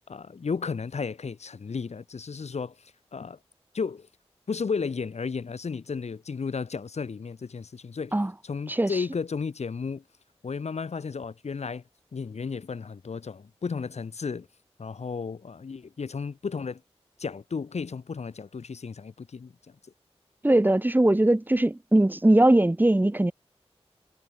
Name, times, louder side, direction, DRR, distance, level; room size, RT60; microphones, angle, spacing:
voice 1, 0.1-2.7 3.1-3.4 3.7-4.1 4.5-8.2 8.4-10.0 10.4-11.8 12.1-14.5 14.8-16.8 17.2-19.5, left 5 dB, 80° left, 3.3 m, -33 dB
voice 2, 8.7-9.0 20.4-23.3, right 1 dB, 15° right, 1.5 m, -20 dB
wide cardioid pair, 80°, 11 cm